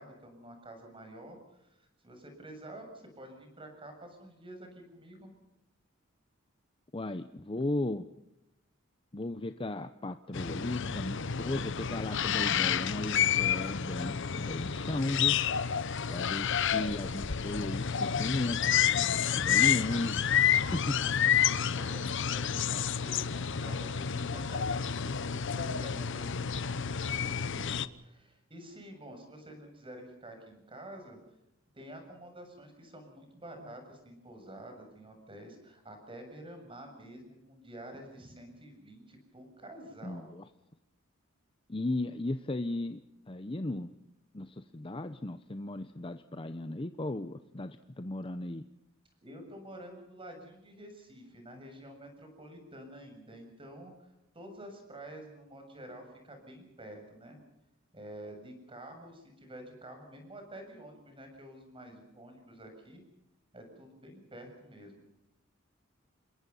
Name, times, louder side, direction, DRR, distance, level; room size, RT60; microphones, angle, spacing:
voice 1, 0.0-5.3 21.7-31.2 31.7-40.3 49.2-57.4 57.9-63.0 63.5-65.0, right 1 dB, 25° right, 5 dB, 7.2 m, -49 dB
voice 2, 6.9-8.1 9.1-15.4 16.1-18.6 19.3-20.3 20.7-21.3 40.0-40.4 41.7-43.0 43.3-43.9 44.3-48.6, left 2 dB, 25° left, 9 dB, 0.8 m, -35 dB
sound 1, 10.3-27.9, left 8 dB, 65° left, 0.9 m, -30 dB
28.5 x 22.0 x 5.6 m, 0.88 s
head